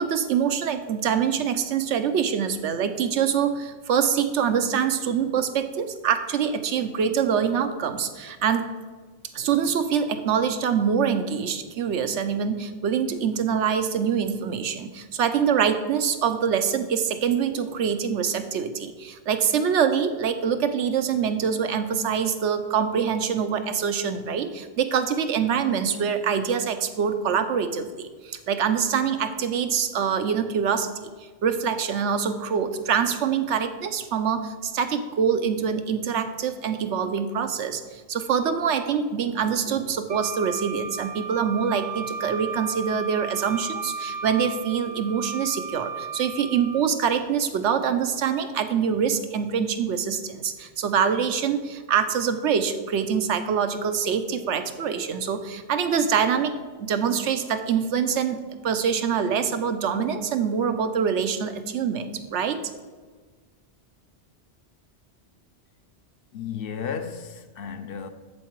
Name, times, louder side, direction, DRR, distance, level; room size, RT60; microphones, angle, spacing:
voice 1, 0.0-8.7 9.3-31.1 31.4-56.5 56.8-62.6, right 7 dB, 90° right, 1.0 m, -25 dB
Wind instrument woodwind instrument, 40.1-46.8, right 5 dB, 65° right, 0.9 m, -34 dB
voice 2, 66.3-68.1, left 7 dB, 60° left, 0.7 m, -33 dB
7.6 x 7.3 x 4.5 m
omnidirectional pair, 1.2 m